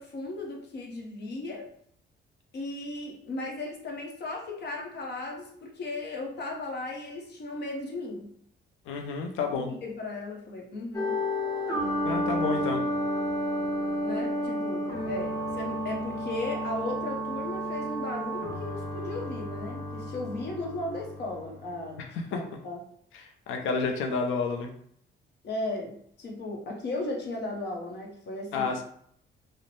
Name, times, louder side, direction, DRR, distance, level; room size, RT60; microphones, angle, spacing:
voice 1, 0.0-1.7 2.5-8.3 9.5-11.2 14.0-22.0 22.3-22.8 25.4-28.8, left 2 dB, 60° left, 0 dB, 0.8 m, -36 dB
voice 2, 8.9-9.7 12.0-12.8 22.3-22.4 23.1-24.7 28.5-28.8, left 4 dB, 85° left, 3 dB, 0.5 m, -30 dB
sound 1, 10.9-22.0, equal, 15° left, 0.8 m, -31 dB
2.5 x 2.0 x 3.1 m, 0.65 s
cardioid pair, 90°, 20 cm